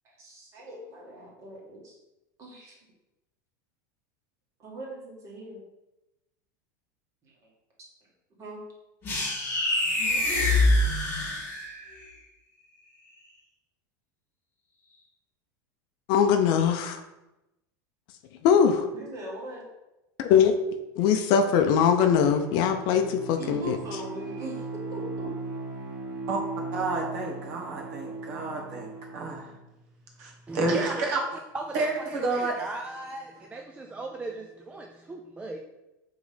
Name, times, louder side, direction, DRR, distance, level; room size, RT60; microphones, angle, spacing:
voice 1, 0.0-2.0 2.4-2.8 4.6-5.6 7.2-7.5 8.4-8.6 18.9-19.7 23.4-25.3, right 1 dB, 30° right, -3 dB, 1.9 m, -41 dB
sound 1, 9.0-11.9, left 2 dB, 20° left, 2.2 m, -25 dB
voice 2, 16.1-17.0 18.4-18.9 20.2-20.5 21.0-23.8, left 7 dB, 45° left, 7 dB, 0.6 m, -21 dB
Bowed string instrument, 21.9-29.6, right 3 dB, 75° right, 1.5 m, -38 dB
voice 3, 26.7-29.5 30.2-31.2 31.7-32.5, right 3 dB, 55° right, 0 dB, 1.6 m, -30 dB
voice 4, 30.5-31.2 31.5-35.6, right 2 dB, 10° right, 2 dB, 0.3 m, -37 dB
5.0 x 3.8 x 5.1 m, 0.96 s
supercardioid pair, 155°, 10 cm